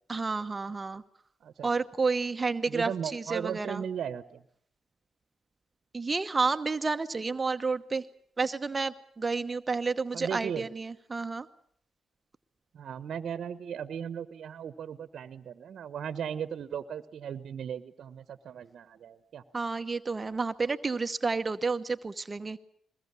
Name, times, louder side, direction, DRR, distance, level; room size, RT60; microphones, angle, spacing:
voice 1, 0.1-1.0 1.6-3.8 5.9-8.0 8.4-11.5 19.5-22.6, right 4 dB, 30° right, 9 dB, 1.0 m, -30 dB
voice 2, 2.7-4.4 10.1-10.6 12.7-19.4, right 8 dB, 65° right, 13 dB, 1.1 m, -37 dB
22.5 x 20.5 x 8.4 m, 0.66 s
supercardioid pair, 55°, 0 cm